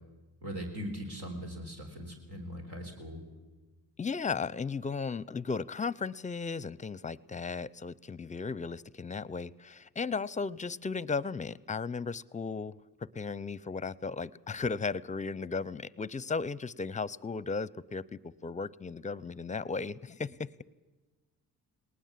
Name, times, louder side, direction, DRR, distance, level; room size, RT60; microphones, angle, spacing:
voice 1, 0.4-3.2, equal, 85° right, 2 dB, 4.1 m, -40 dB
voice 2, 4.0-20.6, left 4 dB, 20° left, 22 dB, 0.5 m, -36 dB
19.5 x 19.0 x 7.5 m, 1.3 s
supercardioid pair, 65°, 38 cm